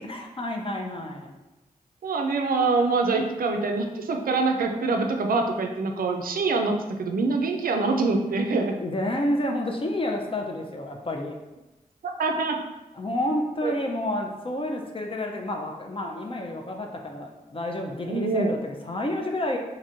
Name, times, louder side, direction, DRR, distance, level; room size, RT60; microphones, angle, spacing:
voice 1, 0.0-1.4 8.8-11.3 12.9-19.6, left 1 dB, 35° left, 2 dB, 0.5 m, -30 dB
voice 2, 2.0-8.8 12.0-12.6 13.6-13.7 18.1-18.6, right 3 dB, 70° right, 4 dB, 0.4 m, -25 dB
3.0 x 2.6 x 2.5 m, 1.0 s
cardioid pair, 40°, 15 cm